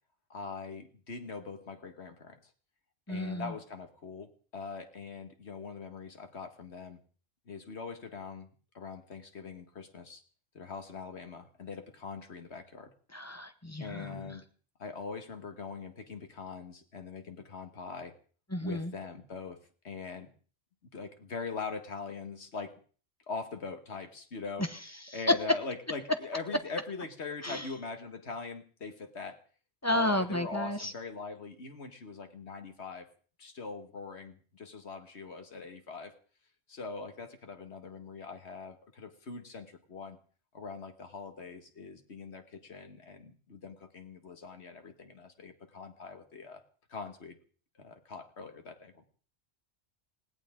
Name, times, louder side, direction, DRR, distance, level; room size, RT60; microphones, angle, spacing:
voice 1, 0.3-2.4 3.1-7.0 7.5-8.5 8.7-10.2 10.5-12.9 13.8-14.4 14.8-18.1 18.6-20.3 20.9-22.8 23.3-24.7 25.1-29.4 29.9-33.1 33.4-36.1 36.7-40.2 40.5-46.6 46.9-47.4 47.8-49.1, left 4 dB, 85° left, 6 dB, 2.0 m, -42 dB
voice 2, 3.1-3.5 13.1-14.3 18.5-18.9 27.4-27.7 29.8-30.9, left 1 dB, 15° left, 8 dB, 1.1 m, -32 dB
20.0 x 17.5 x 3.8 m, 0.41 s
omnidirectional pair, 1.1 m